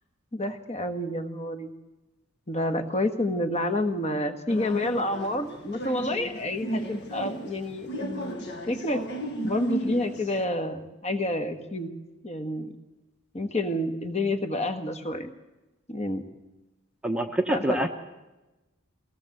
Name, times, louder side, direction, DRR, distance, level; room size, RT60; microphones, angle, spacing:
voice 1, 0.3-1.7 2.5-9.0 9.4-11.9 12.2-12.7 13.3-15.3 15.9-16.2 17.5-17.9, left 1 dB, 30° left, 8 dB, 1.6 m, -29 dB
sound 1, 4.5-10.4, right 2 dB, 50° left, 1.8 m, -35 dB
voice 2, 17.0-17.9, right 1 dB, 5° right, 4 dB, 1.0 m, -25 dB
23.5 x 17.5 x 8.0 m, 1.1 s
head